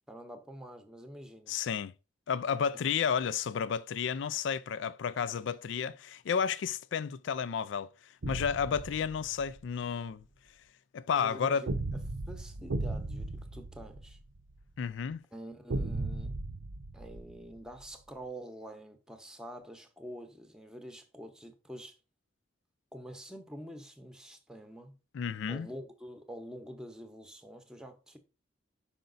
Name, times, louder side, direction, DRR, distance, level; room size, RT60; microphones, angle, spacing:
voice 1, 0.1-1.6 11.1-11.8 12.3-14.2 15.3-16.3 16.9-22.0 22.9-24.9 25.5-28.2, equal, 5° right, 0.8 m, -46 dB
voice 2, 1.5-1.9 2.3-7.9 8.3-10.2 10.9-11.7 14.8-15.2 25.1-25.7, left 7 dB, 70° left, 0.4 m, -32 dB
sound 1, 8.2-9.6 11.7-14.6 15.7-17.9, right 2 dB, 85° right, 0.7 m, -36 dB
5.6 x 5.2 x 3.9 m
head